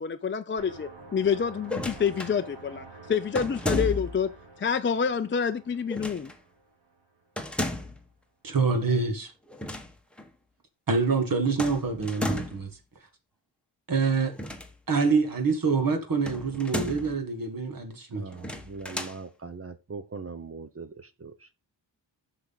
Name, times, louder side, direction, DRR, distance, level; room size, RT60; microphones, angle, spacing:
voice 1, 0.0-4.3 4.6-6.3, left 6 dB, 30° left, 0.4 m, -27 dB
sound 1, 0.6-7.3, right 3 dB, 90° right, 4.1 m, -48 dB
sound 2, 1.6-2.4 3.3-4.3 5.9-6.4 7.4-8.0 9.5-9.9 10.2-10.3 11.6-12.7 14.3-15.1 16.2-17.2 18.3-19.2, left 1 dB, ahead, 1.1 m, -33 dB
voice 2, 8.4-9.3 10.9-12.7 13.9-14.3 14.9-18.2, right 4 dB, 50° right, 1.6 m, -26 dB
voice 3, 18.1-21.5, right 4 dB, 35° right, 0.7 m, -41 dB
7.7 x 6.0 x 4.0 m
wide cardioid pair, 170°, 43 cm